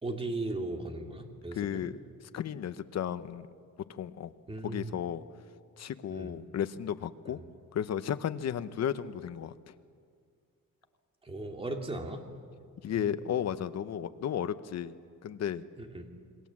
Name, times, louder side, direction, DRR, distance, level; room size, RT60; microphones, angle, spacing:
voice 1, 0.0-1.8 4.5-4.9 6.1-6.3 7.3-7.4 11.2-12.2 12.9-13.1 15.8-16.1, right 2 dB, 15° right, 3 dB, 2.3 m, -37 dB
voice 2, 1.5-3.5 3.9-4.3 4.6-5.2 5.8-7.4 7.7-9.5 12.8-15.6, left 9 dB, 50° left, 11 dB, 0.9 m, -34 dB
27.5 x 22.5 x 7.4 m, 2.2 s
cardioid pair, 150°, 33 cm